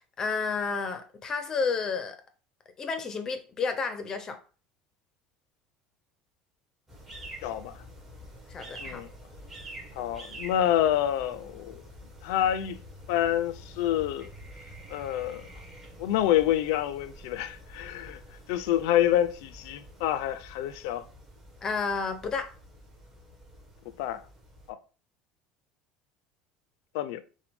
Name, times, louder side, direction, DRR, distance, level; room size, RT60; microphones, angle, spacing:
voice 1, 0.2-2.2 2.8-4.4 8.5-9.0 21.6-22.5, left 5 dB, 25° left, 0.6 m, -31 dB
sound 1, 6.9-24.7, equal, 10° right, 1.0 m, -47 dB
voice 2, 7.4-7.8 8.8-9.1 10.0-11.8 12.2-12.8 13.1-14.3 14.9-15.5 16.0-18.2 18.5-21.0 24.0-24.2 24.7-24.8 26.9-27.2, left 11 dB, 75° left, 0.5 m, -27 dB
6.0 x 2.2 x 3.4 m
cardioid pair, 160°, 3 cm